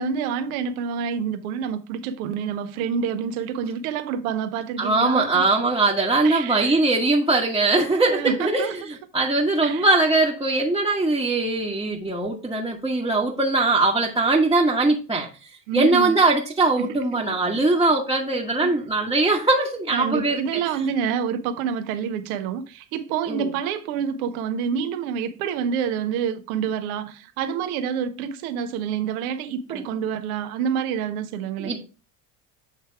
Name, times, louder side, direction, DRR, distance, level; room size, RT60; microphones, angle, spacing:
voice 1, 0.0-5.5 6.2-6.8 7.7-8.8 9.6-9.9 15.7-16.2 16.8-17.2 17.5-17.6 18.6-18.8 19.9-31.8, right 7 dB, 75° right, 1.0 m, -28 dB
voice 2, 4.8-8.7 9.1-15.3 15.7-20.4 23.3-23.5 29.7-29.8 31.6-31.9, right 2 dB, 10° right, 1.3 m, -21 dB
7.8 x 3.3 x 4.6 m
hypercardioid pair, 80°, 44 cm